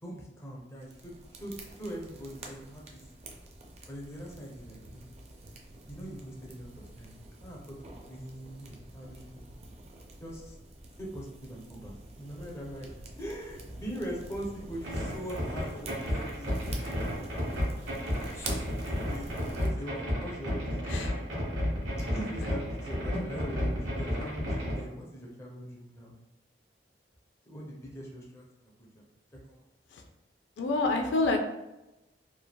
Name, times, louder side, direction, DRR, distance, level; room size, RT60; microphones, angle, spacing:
voice 1, 0.0-3.0 3.9-5.0 5.9-7.1 7.4-9.5 10.2-10.6 11.0-12.9 13.2-16.5 16.8-17.0 18.3-20.8 22.1-26.2 27.5-28.4 28.8-29.0 29.3-29.6, equal, 15° left, -3 dB, 0.5 m, -42 dB
sound 1, 0.8-19.7, right 2 dB, 40° right, 0.4 m, -47 dB
sound 2, 14.8-24.8, equal, 75° right, 1.2 m, -32 dB
voice 2, 30.6-31.4, left 3 dB, 85° left, 4 dB, 0.4 m, -27 dB
3.2 x 2.2 x 2.2 m, 0.97 s
head